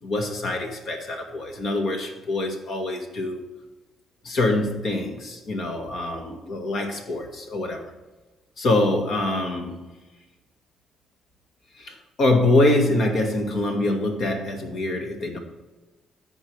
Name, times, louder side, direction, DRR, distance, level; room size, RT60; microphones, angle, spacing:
voice 1, 0.0-3.4 4.2-7.9 8.6-9.9 11.8-15.4, left 2 dB, 60° left, 2.0 m, -24 dB
14.0 x 4.8 x 3.5 m
cardioid pair, 90°, 0 cm